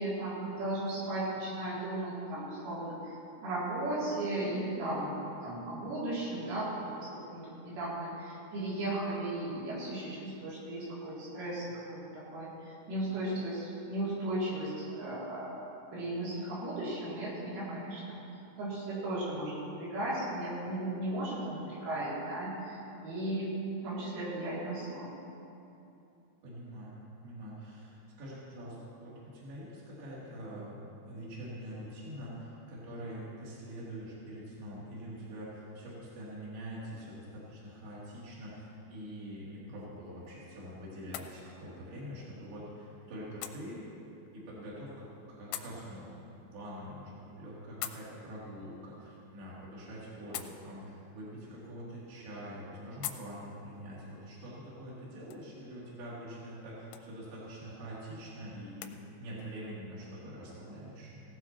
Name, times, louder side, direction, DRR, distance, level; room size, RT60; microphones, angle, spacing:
voice 1, 0.0-3.0 3.4-5.2 5.4-15.6 15.9-18.2 18.6-23.5 23.8-25.1, right 1 dB, 75° right, -8 dB, 5.5 m, -36 dB
voice 2, 26.4-43.8 44.3-61.2, equal, 55° right, -8 dB, 4.8 m, -45 dB
sound 1, 39.5-59.0, left 11 dB, 85° left, 2.7 m, -50 dB
17.0 x 16.5 x 3.1 m, 2.8 s
omnidirectional pair, 5.7 m